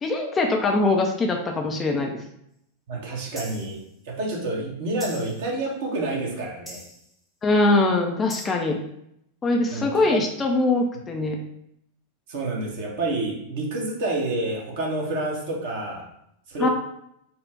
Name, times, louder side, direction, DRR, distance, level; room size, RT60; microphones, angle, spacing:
voice 1, 0.0-2.1 7.4-8.8 9.4-11.4 16.6-16.7, left 2 dB, 20° left, 2 dB, 0.6 m, -22 dB
voice 2, 2.9-6.8 9.7-10.2 12.3-16.0 16.5-16.7, right 2 dB, 50° right, -2 dB, 1.4 m, -28 dB
sound 1, 3.4-3.8 5.0-5.5 6.7-7.1 8.3-8.5, equal, ahead, 0.9 m, -40 dB
4.4 x 2.4 x 4.6 m, 0.76 s
figure-of-eight pair, 90°, 0 cm